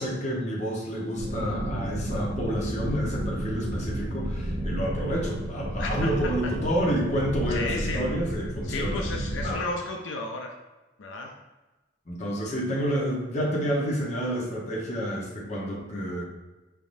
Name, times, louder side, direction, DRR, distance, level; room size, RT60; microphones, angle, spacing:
voice 1, 0.0-9.0 9.4-9.6 12.1-16.2, equal, 40° left, -4 dB, 1.0 m, -29 dB
sound 1, 1.2-9.5, right 1 dB, 35° right, 0.5 m, -32 dB
voice 2, 5.8-6.5 7.5-8.1 8.6-10.6 11.0-11.4, left 3 dB, 85° left, 2 dB, 0.5 m, -33 dB
4.6 x 3.6 x 2.6 m, 1.1 s
head